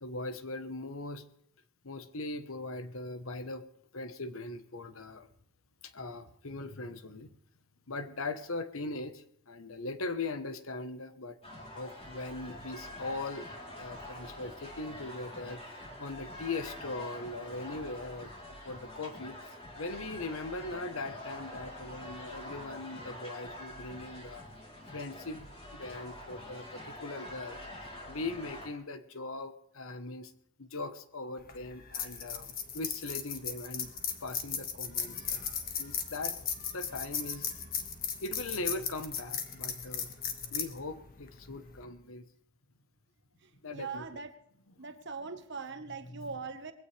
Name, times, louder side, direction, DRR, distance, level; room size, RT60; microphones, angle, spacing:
voice 1, 0.0-1.2 1.8-3.6 3.9-5.3 5.8-7.3 7.9-11.4 11.7-13.5 13.8-15.6 16.0-18.3 18.6-24.4 24.9-27.6 28.1-30.3 30.6-33.9 34.2-37.5 38.2-40.2 40.5-42.3 43.6-44.1 46.1-46.3, left 2 dB, 75° left, 10 dB, 1.2 m, -40 dB
sound 1, 11.4-28.7, left 1 dB, 25° left, 3.5 m, -46 dB
sound 2, 31.4-41.8, left 7 dB, 45° left, 1.6 m, -37 dB
voice 2, 43.4-44.3 44.8-46.7, right 5 dB, 55° right, 7 dB, 1.4 m, -41 dB
21.0 x 16.5 x 3.4 m, 0.71 s
head